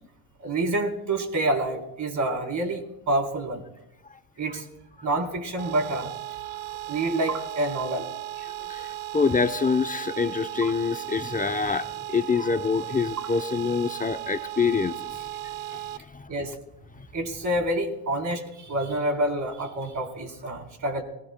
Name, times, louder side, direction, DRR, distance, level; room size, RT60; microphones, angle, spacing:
voice 1, 0.4-3.6 4.4-4.7 5.0-6.1 6.9-8.1 10.6-10.7 16.3-16.5 17.1-21.0, right 1 dB, 45° right, 3 dB, 3.8 m, -27 dB
sound 1, 5.6-16.0, right 14 dB, 75° right, 1.0 m, -36 dB
voice 2, 8.7-15.2 15.7-16.3, left 5 dB, 20° left, 11 dB, 0.7 m, -26 dB
28.5 x 19.5 x 2.2 m, 0.93 s
supercardioid pair, 75°, 42 cm